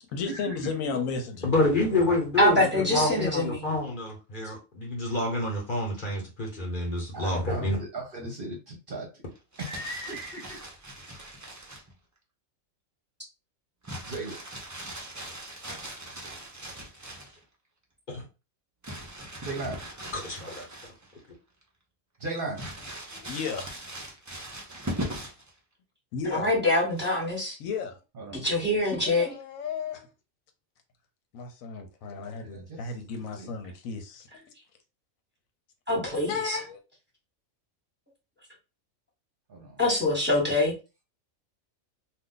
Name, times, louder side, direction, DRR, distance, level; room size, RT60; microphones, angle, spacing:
voice 1, 0.1-1.5 23.1-23.7 26.1-26.5 27.6-28.0 29.0-30.1 31.3-34.4 36.3-36.8, left 5 dB, 80° left, 1.0 m, -34 dB
voice 2, 1.4-7.8 18.1-18.2 20.1-20.6, left 2 dB, 40° left, 1.0 m, -28 dB
voice 3, 2.4-3.6 26.2-27.6 28.3-29.3 35.9-36.6 39.8-40.7, left 1 dB, 10° right, 1.1 m, -24 dB
voice 4, 7.1-9.1 9.6-10.6 14.1-14.4 19.4-19.8 22.2-22.6 28.2-28.5 32.4-32.8 33.4-33.5 39.5-39.8, right 2 dB, 50° right, 0.8 m, -36 dB
Crumpling crinkling, 9.3-11.9 13.8-17.4 18.8-21.2 21.6-21.7 22.5-25.5 26.9-27.4, right 1 dB, 25° right, 0.3 m, -40 dB
2.5 x 2.3 x 3.7 m
omnidirectional pair, 1.4 m